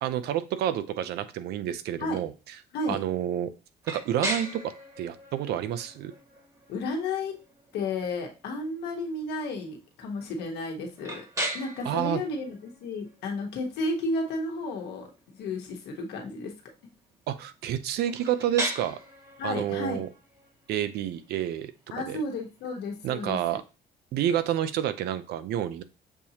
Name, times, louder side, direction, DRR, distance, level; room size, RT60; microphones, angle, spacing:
voice 1, 0.0-2.3 2.9-3.5 3.9-6.1 11.8-12.2 17.3-19.0 19.4-20.1 20.7-21.7 22.1-22.2 23.0-23.6 24.1-25.8, right 11 dB, 70° right, 12 dB, 0.5 m, -29 dB
sound 1, 3.8-23.6, right 1 dB, 20° right, 1.4 m, -40 dB
voice 2, 6.7-7.4 7.7-11.2 11.5-15.1 15.4-16.5 19.4-20.0 21.9-23.4, left 2 dB, 80° left, 2 dB, 1.2 m, -32 dB
6.8 x 2.7 x 2.8 m, 0.30 s
cardioid pair, 110°, 17 cm